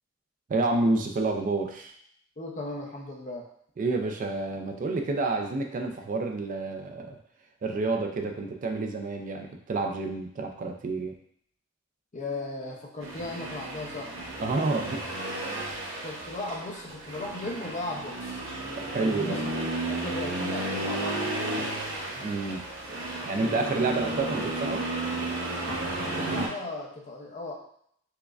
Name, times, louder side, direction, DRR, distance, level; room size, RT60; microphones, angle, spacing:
voice 1, 0.5-1.9 3.8-7.2 7.6-11.1 14.4-15.0 18.8-19.4 22.2-22.6 23.2-24.9, right 3 dB, 40° right, 4 dB, 0.4 m, -29 dB
voice 2, 2.4-3.5 12.1-14.3 16.0-18.4 19.1-21.8 26.0-27.5, left 2 dB, 40° left, 0 dB, 0.6 m, -37 dB
Accelerating revving vroom, 13.0-26.5, right 2 dB, 80° right, 0.8 m, -33 dB
4.6 x 2.1 x 2.3 m, 0.68 s
head